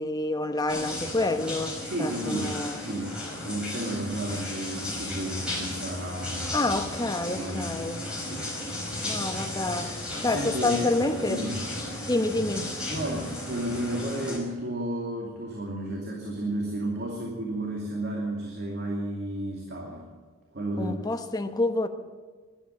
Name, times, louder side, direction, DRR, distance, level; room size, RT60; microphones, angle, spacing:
voice 1, 0.0-2.8 6.5-8.0 9.0-9.9 10.2-11.4 12.0-12.7 20.8-21.9, left 2 dB, 20° left, 1.0 m, -28 dB
sound 1, 0.7-14.4, left 1 dB, 5° right, 5.1 m, -35 dB
voice 2, 1.9-3.1 3.4-6.6 7.3-7.8 8.2-8.5 9.1-9.2 10.3-11.6 12.9-20.1 20.5-21.2, right 1 dB, 55° right, 2.7 m, -32 dB
13.0 x 12.0 x 9.0 m
head